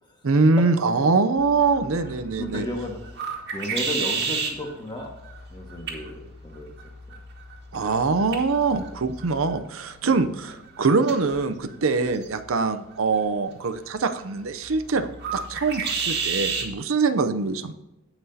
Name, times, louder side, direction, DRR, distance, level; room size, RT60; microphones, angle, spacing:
voice 1, 0.2-2.7 7.7-17.7, right 4 dB, 70° right, 10 dB, 0.6 m, -23 dB
sound 1, 1.4-16.7, right 5 dB, 50° right, 1.9 m, -34 dB
voice 2, 2.0-3.1 3.5-5.1 5.5-6.7 10.0-10.3, left 1 dB, 20° left, 1 dB, 1.7 m, -34 dB
17.0 x 6.0 x 2.8 m, 0.97 s
head